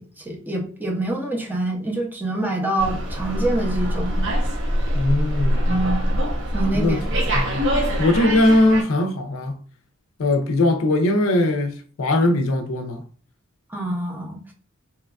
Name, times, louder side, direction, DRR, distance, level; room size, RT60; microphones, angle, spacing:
voice 1, 0.0-4.2 5.7-6.0 6.5-7.3 13.7-14.4, right 2 dB, 10° right, 0.5 m, -26 dB
Slam, 2.8-8.8, equal, 60° right, 0.8 m, -23 dB
voice 2, 4.9-5.6 6.7-7.0 7.3-7.7 8.0-9.6 10.2-13.0, left 1 dB, 70° left, 0.5 m, -20 dB
2.9 x 2.2 x 2.3 m
head